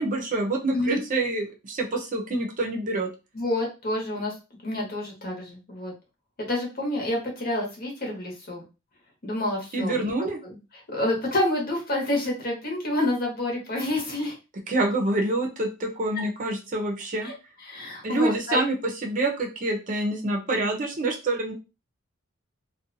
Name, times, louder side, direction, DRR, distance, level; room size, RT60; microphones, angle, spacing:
voice 1, 0.0-3.1 9.7-10.4 14.7-17.3 18.0-21.5, right 2 dB, 40° right, 2 dB, 0.6 m, -27 dB
voice 2, 3.3-4.3 4.6-5.9 6.4-8.6 9.2-10.3 10.9-14.4 17.2-17.3 17.7-18.6, left 1 dB, 50° left, -1 dB, 1.0 m, -28 dB
2.5 x 2.2 x 2.6 m, 0.29 s
head